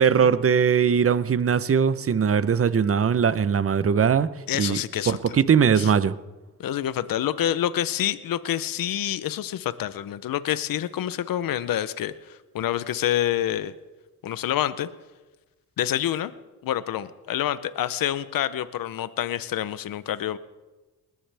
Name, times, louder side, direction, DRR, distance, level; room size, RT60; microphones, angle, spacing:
voice 1, 0.0-6.2, right 7 dB, 40° right, 15 dB, 0.8 m, -21 dB
voice 2, 4.5-5.4 5.8-5.9 6.6-13.7 14.2-14.9 15.8-16.3 16.6-20.4, left 11 dB, 80° left, 14 dB, 0.8 m, -27 dB
20.0 x 20.0 x 3.5 m, 1.2 s
cardioid pair, 70°, 34 cm